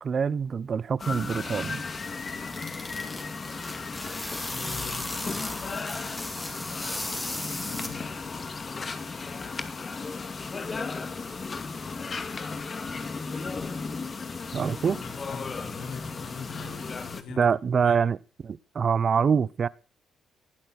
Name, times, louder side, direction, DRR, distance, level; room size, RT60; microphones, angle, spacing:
voice 1, 0.0-1.8 14.5-15.0 17.4-18.2 18.4-19.7, right 6 dB, 45° right, 0.9 m, -25 dB
sound 1, 1.0-17.2, left 4 dB, 35° left, 2.3 m, -35 dB
sound 2, 2.1-8.3, left 1 dB, 15° left, 4.1 m, -37 dB
voice 2, 4.5-5.1 7.7-8.1 14.9-18.0, left 5 dB, 80° left, 4.5 m, -42 dB
19.5 x 12.0 x 4.3 m
cardioid pair, 90°, 0 cm